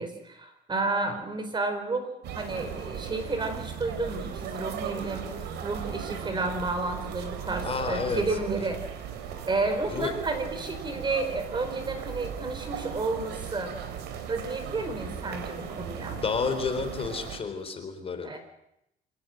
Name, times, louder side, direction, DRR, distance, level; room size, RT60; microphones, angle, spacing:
voice 1, 0.0-8.8 9.5-13.7 14.3-16.2 18.2-18.5, right 3 dB, 25° right, 8 dB, 4.7 m, -31 dB
sound 1, 2.2-17.4, right 8 dB, 80° right, 4.0 m, -37 dB
voice 2, 7.6-8.4 9.9-10.1 16.1-18.3, left 5 dB, 35° left, 7 dB, 3.9 m, -30 dB
27.0 x 18.0 x 7.8 m, 0.80 s
cardioid pair, 110°, 17 cm